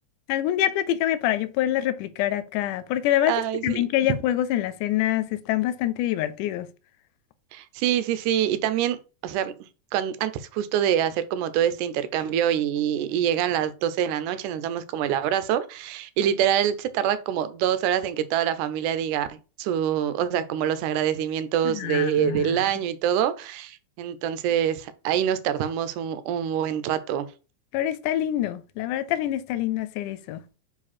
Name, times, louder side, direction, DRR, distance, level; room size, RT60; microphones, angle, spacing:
voice 1, 0.3-3.3 3.6-6.7 21.6-22.7 27.7-30.4, left 13 dB, 85° left, 2.1 m, -25 dB
voice 2, 3.3-3.9 7.5-9.5 9.9-27.3, right 10 dB, 85° right, 2.1 m, -25 dB
4.9 x 4.9 x 4.2 m
omnidirectional pair, 3.6 m